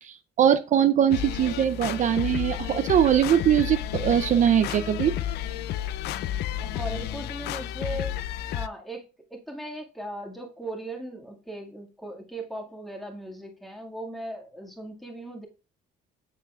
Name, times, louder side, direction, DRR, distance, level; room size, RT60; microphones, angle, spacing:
voice 1, 0.0-5.2, right 9 dB, 45° right, 0.5 m, -22 dB
sound 1, 1.1-8.7, left 11 dB, 75° left, 0.5 m, -31 dB
voice 2, 6.5-8.1 8.5-15.5, right 1 dB, ahead, 1.9 m, -38 dB
7.3 x 6.7 x 2.3 m
cardioid pair, 110°, 17 cm